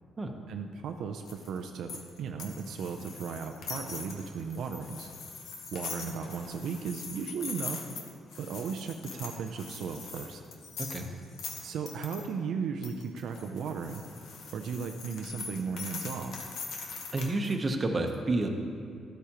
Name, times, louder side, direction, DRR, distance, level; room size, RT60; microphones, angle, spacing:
voice 1, 0.5-5.1 5.7-7.9 8.4-10.4 11.6-14.0 14.5-16.4, right 6 dB, 75° right, 4 dB, 0.5 m, -36 dB
sound 1, 1.3-12.3 12.8-17.5, left 5 dB, 75° left, 1.1 m, -42 dB
voice 2, 17.1-18.5, right 2 dB, 30° right, 4 dB, 0.9 m, -29 dB
12.5 x 8.3 x 3.0 m, 2.3 s
cardioid pair, 90°, 0 cm